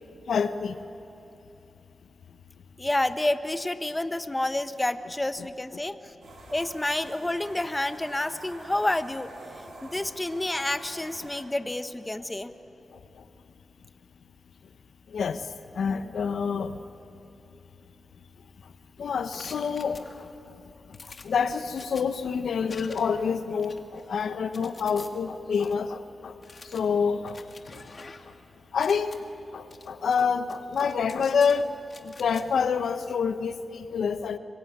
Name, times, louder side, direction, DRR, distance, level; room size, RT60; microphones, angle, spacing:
voice 1, 0.3-0.8 12.9-13.2 15.1-15.5 15.7-16.8 19.0-20.3 21.2-26.3 26.6-27.4 28.7-29.2 29.5-31.7 32.0-34.4, left 6 dB, 80° left, 10 dB, 1.0 m, -27 dB
voice 2, 2.8-6.1 6.5-9.3 9.8-12.5, left 1 dB, 20° left, 11 dB, 1.1 m, -29 dB
sound 1, 6.2-11.4, right 2 dB, 75° right, 5.2 m, -47 dB
sound 2, 19.3-20.4 20.9-22.0 22.7-23.2 23.6-25.1 25.6-25.7 26.4-28.4 28.7-29.2 29.7-30.2 30.5-31.6 31.9-32.4, left 4 dB, 50° left, 2.0 m, -47 dB
24.5 x 21.5 x 9.4 m, 2.9 s
cardioid pair, 65°, 0 cm